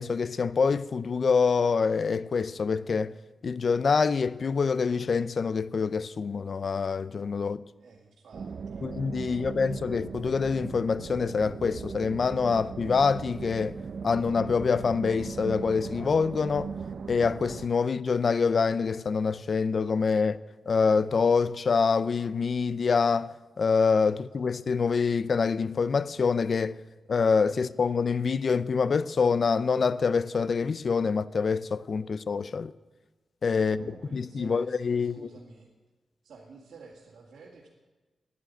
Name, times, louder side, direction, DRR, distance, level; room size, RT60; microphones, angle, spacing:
voice 1, 0.0-3.1 3.4-7.6 8.8-16.7 17.1-20.4 20.7-26.8 27.1-32.7 33.4-33.8 34.1-35.3, left 5 dB, 55° left, 0.4 m, -26 dB
voice 2, 7.8-9.8 33.5-35.7 36.2-37.7, right 4 dB, 85° right, 2.2 m, -51 dB
sound 1, 8.3-17.7, right 6 dB, 70° right, 0.7 m, -39 dB
11.5 x 10.0 x 9.2 m
cardioid pair, 80°, 0 cm